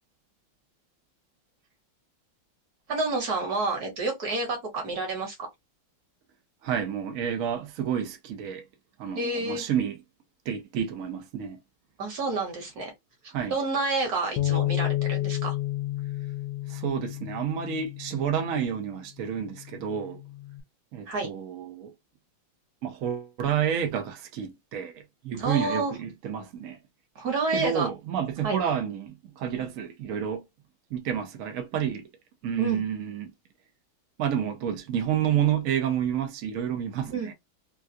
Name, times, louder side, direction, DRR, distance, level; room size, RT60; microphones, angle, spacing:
voice 1, 2.9-5.4 9.1-9.6 12.0-12.9 13.5-15.6 21.1-21.3 25.4-25.9 27.1-27.9 28.4-28.6 32.6-32.8 37.1-37.3, right 3 dB, 55° right, 1.6 m, -29 dB
voice 2, 6.6-8.6 9.0-10.0 10.5-11.6 13.3-13.6 16.7-20.2 20.9-21.9 22.8-26.8 27.5-30.5 30.9-32.1 32.4-33.3 34.2-37.3, right 8 dB, 85° right, 0.7 m, -29 dB
Bass guitar, 14.4-18.8 19.4-20.6, left 15 dB, 75° left, 1.3 m, -31 dB
3.5 x 2.3 x 2.5 m
omnidirectional pair, 2.2 m